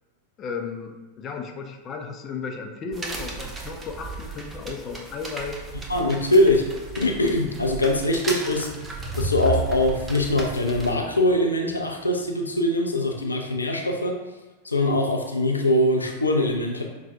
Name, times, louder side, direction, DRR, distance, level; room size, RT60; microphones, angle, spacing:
voice 1, 0.4-5.6, left 5 dB, 30° left, 3 dB, 0.5 m, -34 dB
sound 1, 2.9-10.9, right 3 dB, 15° right, 0.6 m, -37 dB
voice 2, 5.9-6.7 6.9-8.7 9.2-14.2 14.6-16.8, left 1 dB, 80° left, 1 dB, 0.4 m, -22 dB
sound 2, 8.4-11.7, right 2 dB, 50° right, 0.8 m, -32 dB
5.7 x 2.3 x 2.6 m, 1.2 s
figure-of-eight pair, 90°, 0 cm